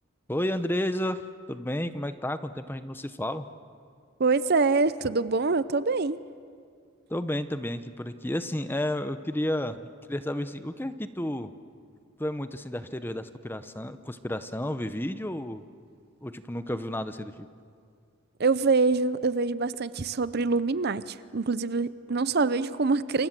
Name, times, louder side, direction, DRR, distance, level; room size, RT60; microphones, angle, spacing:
voice 1, 0.3-3.5 7.1-9.8 10.1-11.5 12.2-15.6 16.2-17.3, left 1 dB, 10° left, 11 dB, 0.8 m, -31 dB
voice 2, 4.2-6.2 18.4-23.3, right 4 dB, 50° right, 15 dB, 0.6 m, -25 dB
28.0 x 28.0 x 7.6 m, 2.2 s
head